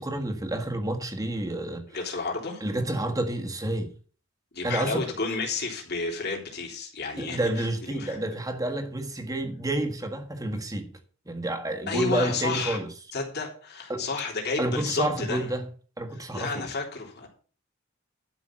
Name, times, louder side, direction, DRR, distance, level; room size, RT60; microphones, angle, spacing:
voice 1, 0.0-1.9 2.6-3.9 4.6-5.1 7.2-10.9 11.3-12.9 13.9-14.0 14.6-15.7 16.0-16.7, right 1 dB, 20° right, 1.6 m, -29 dB
voice 2, 1.9-2.7 4.5-8.2 11.9-12.8 13.1-15.4 16.3-17.3, left 4 dB, 55° left, 3.5 m, -31 dB
12.0 x 5.5 x 7.5 m
head